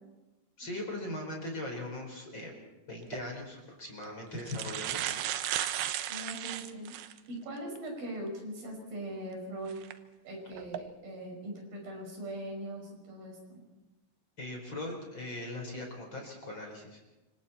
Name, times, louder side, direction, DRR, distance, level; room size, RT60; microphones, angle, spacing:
voice 1, 0.6-2.5 2.9-5.1 14.4-17.0, left 1 dB, 30° left, 1 dB, 5.2 m, -40 dB
sound 1, 3.0-3.2 4.0-4.1 4.4-7.2 7.8-7.9 9.7-9.9 10.5-10.8, right 12 dB, 90° right, 2.9 m, -35 dB
voice 2, 6.1-6.9 7.3-9.8 10.2-13.6, right 1 dB, 70° right, 0 dB, 7.5 m, -41 dB
27.5 x 25.5 x 4.4 m, 1.1 s
omnidirectional pair, 4.3 m